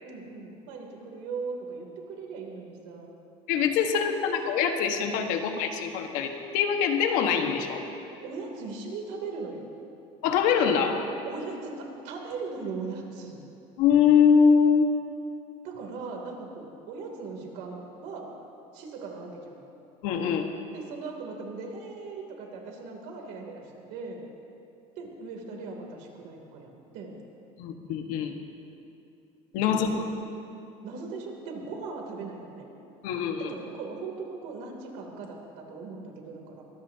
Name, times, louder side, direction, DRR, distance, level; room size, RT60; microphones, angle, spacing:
voice 1, 0.0-3.1 3.8-4.0 8.0-9.6 11.2-13.4 15.6-18.3 18.7-19.6 20.7-23.6 23.9-24.2 25.0-27.2 29.7-30.1 30.8-32.7 33.4-36.6, right 4 dB, 85° right, 1 dB, 3.1 m, -39 dB
voice 2, 3.5-7.8 10.2-11.1 13.8-14.9 20.0-20.5 27.6-28.3 29.5-29.9 33.0-33.5, left 7 dB, 80° left, 4 dB, 1.5 m, -23 dB
23.5 x 18.5 x 2.9 m, 2.7 s
cardioid pair, 155°, 13 cm